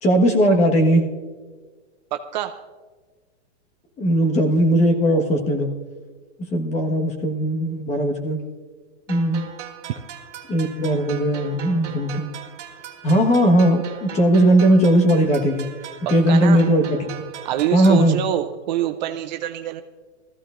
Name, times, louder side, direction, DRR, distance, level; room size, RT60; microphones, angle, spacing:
voice 1, 0.0-1.0 4.0-5.7 6.5-8.4 9.1-9.5 10.5-12.3 13.0-15.7 16.1-17.1 17.7-18.2, right 1 dB, 20° left, 3 dB, 1.4 m, -18 dB
voice 2, 2.1-2.6 16.3-16.6 17.4-19.8, right 12 dB, 40° right, 8 dB, 0.5 m, -25 dB
sound 1, 9.1-18.1, right 9 dB, 80° right, 1.8 m, -39 dB
19.5 x 15.0 x 2.5 m, 1.4 s
hypercardioid pair, 150°, 36 cm